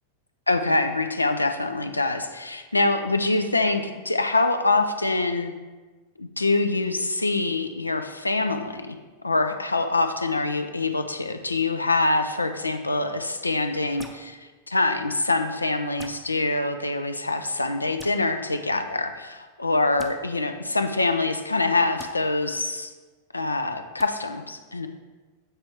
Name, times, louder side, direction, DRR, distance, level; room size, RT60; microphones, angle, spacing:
voice 1, 0.5-5.5 6.2-9.0 9.2-14.4 14.7-22.9 23.3-24.9, left 2 dB, 80° left, 8 dB, 0.4 m, -25 dB
Laser pistol shots - different lengths, 14.0-14.2 16.0-16.2 18.0-18.2 20.0-20.1 22.0-22.1 24.0-24.1, equal, ahead, 0.6 m, -41 dB
7.8 x 3.4 x 4.4 m, 1.3 s
figure-of-eight pair, 90°, 0 cm